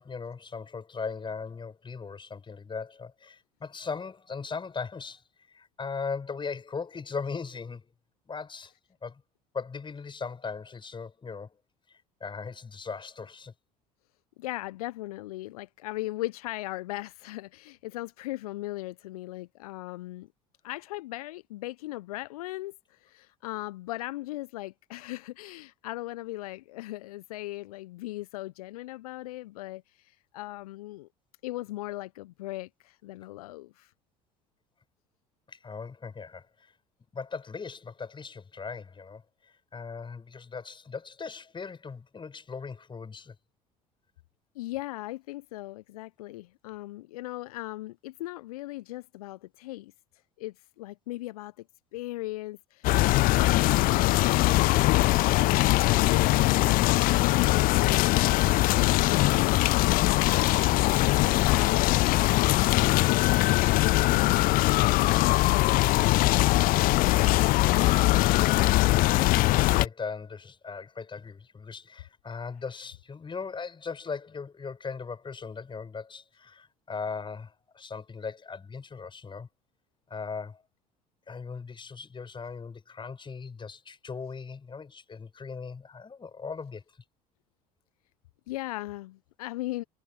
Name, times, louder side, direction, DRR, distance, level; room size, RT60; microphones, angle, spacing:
voice 1, 0.0-7.8 8.3-8.7 9.0-9.2 9.5-11.5 11.9-13.5 35.5-36.7 37.1-43.4 67.8-68.5 69.0-79.5 80.1-80.6 81.3-86.8, left 5 dB, 25° left, 7.3 m, -39 dB
voice 2, 14.4-20.3 20.6-31.1 31.4-33.9 44.5-49.9 50.4-51.5 51.9-58.2 58.7-60.3 60.8-66.6 88.5-89.8, left 18 dB, 70° left, 1.1 m, -38 dB
sound 1, 52.8-69.9, left 19 dB, 45° left, 0.6 m, -22 dB
figure-of-eight pair, 65°, 20 cm